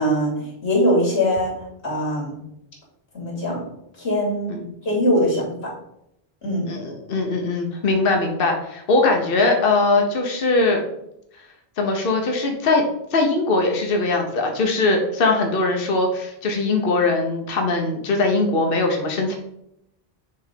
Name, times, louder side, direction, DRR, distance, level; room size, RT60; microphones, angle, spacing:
voice 1, 0.0-1.6 1.8-2.4 3.1-3.6 4.0-4.6 4.8-5.7 6.4-6.7, equal, 90° left, -4 dB, 3.0 m, -22 dB
voice 2, 6.7-10.8 11.8-12.8 13.1-19.4, left 3 dB, 60° left, 3 dB, 1.1 m, -21 dB
6.7 x 3.5 x 5.1 m, 0.79 s
omnidirectional pair, 1.1 m